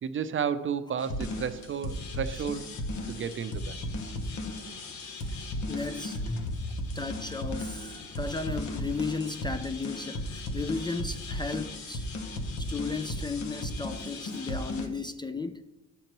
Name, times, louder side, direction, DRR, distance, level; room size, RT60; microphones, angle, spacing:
voice 1, 0.0-2.6 3.1-3.8, right 7 dB, 40° right, 0.6 m, -32 dB
sound 1, 1.0-14.9, left 1 dB, 70° left, 1.2 m, -35 dB
voice 2, 5.3-6.2 6.9-12.1 12.6-15.6, left 3 dB, 15° left, 0.4 m, -35 dB
12.0 x 6.6 x 3.0 m
cardioid pair, 90°, 30 cm